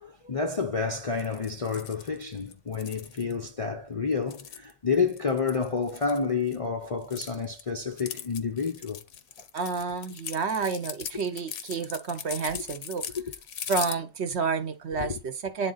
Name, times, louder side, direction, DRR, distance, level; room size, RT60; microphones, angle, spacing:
voice 1, 0.0-9.0 12.5-12.6 15.0-15.1, left 5 dB, 40° left, 0.5 m, -29 dB
sound 1, 1.2-3.3 4.1-6.6 6.9-14.0, left 8 dB, 70° left, 1.0 m, -39 dB
voice 2, 9.5-13.0 13.7-15.7, right 5 dB, 60° right, 1.1 m, -30 dB
9.5 x 3.8 x 4.0 m
omnidirectional pair, 1.3 m